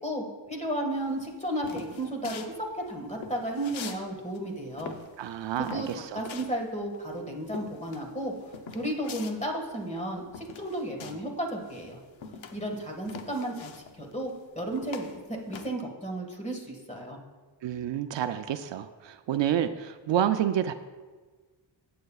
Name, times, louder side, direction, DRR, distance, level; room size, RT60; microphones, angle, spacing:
voice 1, 0.0-4.9 5.6-5.9 6.1-12.0 12.5-17.2, right 1 dB, 15° left, 1 dB, 1.7 m, -33 dB
sound 1, 1.0-4.0 4.3-11.4 11.6-15.7, left 6 dB, 80° left, 0.9 m, -43 dB
voice 2, 5.2-6.2 17.6-20.7, right 10 dB, 70° right, 10 dB, 0.5 m, -29 dB
14.5 x 8.6 x 2.4 m, 1.4 s
wide cardioid pair, 110°, 45 cm